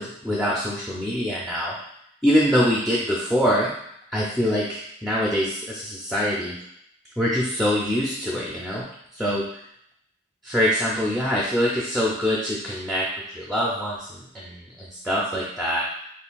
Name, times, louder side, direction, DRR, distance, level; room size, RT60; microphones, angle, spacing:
voice 1, 0.0-1.8 2.2-3.7 4.1-6.6 7.2-8.8 9.1-9.4 10.4-15.8, equal, ahead, -5 dB, 0.4 m, -24 dB
4.3 x 3.1 x 2.3 m, 0.73 s
head